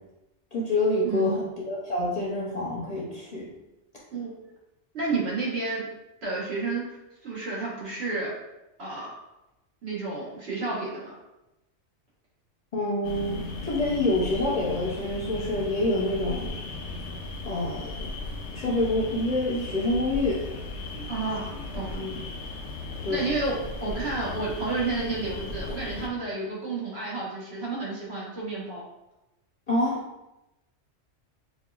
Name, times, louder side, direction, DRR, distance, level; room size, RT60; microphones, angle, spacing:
voice 1, 0.5-3.5 12.7-16.6 17.4-18.1 18.5-20.4 21.9-22.2 23.0-23.3 29.7-30.0, left 1 dB, 40° left, -5 dB, 0.7 m, -27 dB
voice 2, 1.0-1.4 4.1-4.5 4.9-5.9 6.2-8.3 8.8-9.1 9.8-11.1 20.9-22.1 23.1-23.6 23.8-28.8, right 3 dB, 65° right, -6 dB, 1.4 m, -31 dB
sound 1, 13.0-26.1, left 3 dB, 75° left, 0.9 m, -36 dB
5.2 x 2.3 x 2.3 m, 0.94 s
omnidirectional pair, 1.2 m